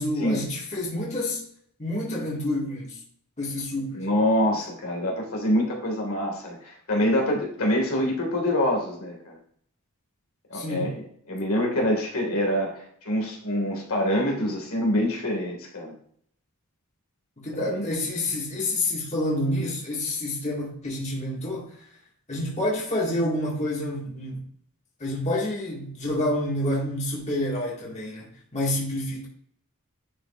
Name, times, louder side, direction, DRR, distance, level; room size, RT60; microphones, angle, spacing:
voice 1, 0.0-1.4 1.8-3.0 3.4-4.1 10.5-11.0 17.4-21.7 22.3-24.4 25.0-29.3, left 1 dB, 30° left, 1.9 m, -28 dB
voice 2, 4.0-9.4 10.5-10.9 11.3-15.9 17.5-17.9, left 1 dB, 65° left, 2.0 m, -25 dB
10.5 x 5.0 x 2.5 m
head